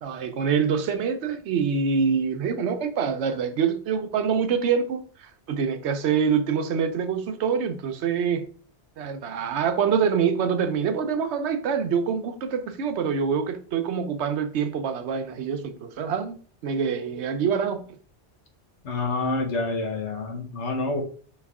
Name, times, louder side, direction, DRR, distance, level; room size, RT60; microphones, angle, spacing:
voice 1, 0.0-8.5 9.0-16.4 16.6-18.0, right 6 dB, 80° right, 0.9 m, -25 dB
voice 2, 18.8-21.0, left 3 dB, 85° left, 1.3 m, -27 dB
4.8 x 3.1 x 3.5 m
omnidirectional pair, 1.1 m